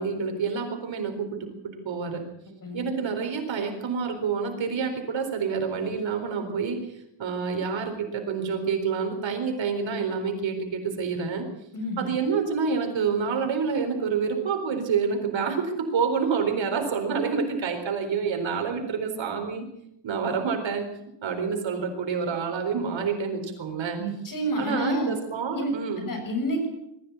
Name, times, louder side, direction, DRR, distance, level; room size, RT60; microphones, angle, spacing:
voice 1, 0.0-2.2 2.7-6.8 7.2-11.5 12.0-19.6 20.0-20.9 21.2-24.0 24.6-26.1, right 5 dB, 65° right, 5 dB, 4.3 m, -28 dB
voice 2, 2.6-2.9 11.7-12.1 24.0-25.1 25.5-25.7 26.0-26.7, right 1 dB, 40° left, 4 dB, 7.3 m, -29 dB
21.5 x 14.5 x 8.4 m, 0.80 s
cardioid pair, 130°, 49 cm